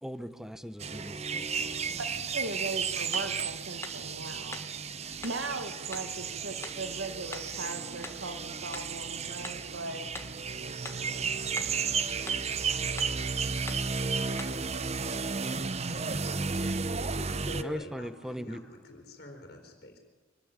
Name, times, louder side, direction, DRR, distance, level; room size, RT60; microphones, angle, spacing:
voice 1, 0.0-2.0 17.6-18.6, equal, 5° right, 12 dB, 1.0 m, -40 dB
sound 1, 0.8-17.6, right 5 dB, 35° right, 0.9 m, -33 dB
voice 2, 2.3-4.7 5.0-10.2, right 2 dB, 80° right, 7 dB, 1.8 m, -38 dB
sound 2, 3.1-3.4 3.8-4.1 4.5-4.8 5.2-5.4 5.9-6.1 6.6-6.8 7.3-7.6 8.0-8.3 8.7-9.0 9.4-9.7 10.1-10.4 10.8-11.1 11.6-11.8 12.3-12.5 13.0-13.2 13.7-13.9 14.4-14.6, left 3 dB, 15° left, 1.9 m, -43 dB
voice 3, 17.2-20.0, left 1 dB, 55° left, 2 dB, 4.0 m, -46 dB
24.5 x 18.5 x 8.9 m, 1.2 s
head